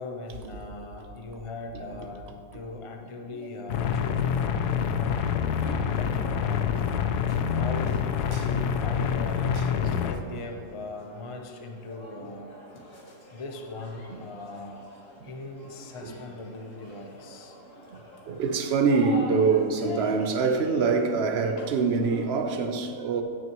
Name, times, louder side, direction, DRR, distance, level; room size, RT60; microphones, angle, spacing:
voice 1, 0.0-5.2 5.8-6.7 7.5-12.5 13.3-14.9 15.2-17.6, left 2 dB, 35° left, 0.5 m, -40 dB
sound 1, 3.7-10.1, left 7 dB, 80° left, 1.1 m, -26 dB
voice 2, 5.6-6.0 6.7-6.8 8.3-8.5 9.0-9.1 9.5-10.0 12.2-12.3 14.1-14.2 15.2-15.3 16.0-16.2 17.3-17.4 17.9-18.0 18.2-23.2, right 4 dB, 50° right, 0.9 m, -26 dB
sound 2, 7.5-22.5, left 1 dB, 55° left, 1.7 m, -47 dB
15.5 x 6.3 x 3.0 m
omnidirectional pair, 1.7 m